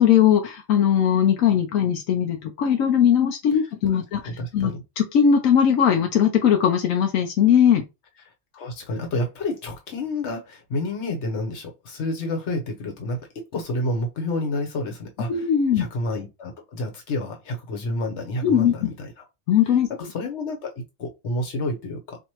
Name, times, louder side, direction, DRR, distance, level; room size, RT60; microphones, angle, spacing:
voice 1, 0.0-4.2 4.5-7.8 15.3-15.9 18.4-18.9 19.5-19.9, left 8 dB, 85° left, 1.0 m, -19 dB
voice 2, 3.9-4.8 8.2-15.5 15.8-19.2 20.0-22.2, left 1 dB, 60° left, 1.3 m, -30 dB
4.3 x 2.8 x 3.0 m
omnidirectional pair, 1.3 m